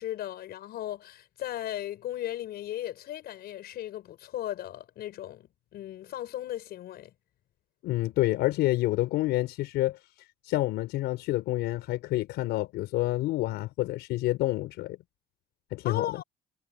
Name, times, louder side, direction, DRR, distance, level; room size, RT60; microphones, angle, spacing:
voice 1, 0.0-7.1 15.8-16.2, left 13 dB, 70° left, 7.7 m, -36 dB
voice 2, 7.8-10.0 10.4-15.0 15.7-16.2, left 17 dB, 85° left, 5.3 m, -28 dB
cardioid pair, 110°, 17 cm